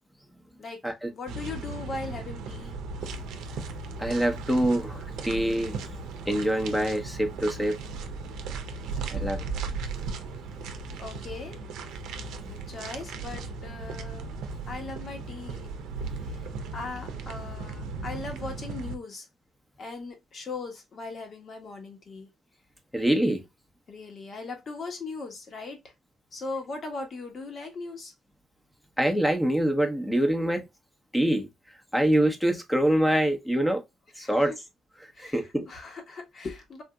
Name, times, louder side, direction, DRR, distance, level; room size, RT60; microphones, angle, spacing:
voice 1, 0.6-2.7 9.0-9.3 11.0-11.6 12.4-14.4 14.7-15.7 16.2-19.3 19.8-22.3 23.9-25.9 26.3-28.1 34.2-34.6 35.1-36.8, left 3 dB, 50° left, 1.3 m, -39 dB
sound 1, 1.3-19.0, right 4 dB, 85° right, 0.6 m, -36 dB
voice 2, 4.0-5.8 6.3-7.8 9.1-9.4 22.9-23.4 29.0-30.7 31.1-31.5 31.9-33.8 34.2-34.5 35.2-35.7, right 1 dB, 5° left, 0.9 m, -25 dB
3.7 x 2.7 x 2.3 m
cardioid pair, 90°, 0 cm